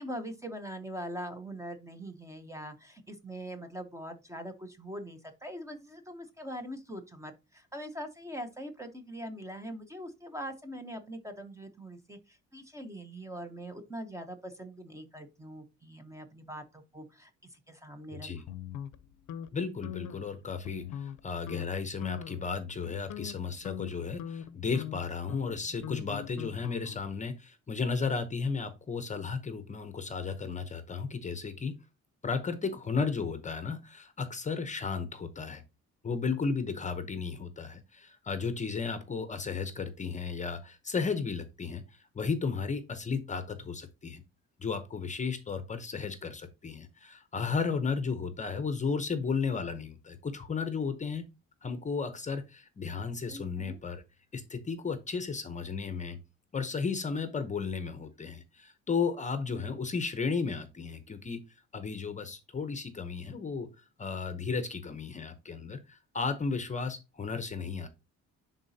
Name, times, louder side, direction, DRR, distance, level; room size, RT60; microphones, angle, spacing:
voice 1, 0.0-18.3 53.3-53.8, equal, 10° right, 7 dB, 0.7 m, -42 dB
voice 2, 18.1-18.4 19.5-31.8 32.2-35.6 36.0-44.2 44.6-51.3 51.6-54.0 54.3-56.2 56.5-61.4 61.7-67.9, left 5 dB, 25° left, 10 dB, 0.7 m, -34 dB
sound 1, 18.5-19.5 19.8-20.2 20.6-21.2 21.5-21.7 22.0-22.4 22.8-27.2, left 11 dB, 70° left, 0.6 m, -41 dB
10.5 x 4.0 x 2.7 m, 0.27 s
cardioid pair, 170°, 31 cm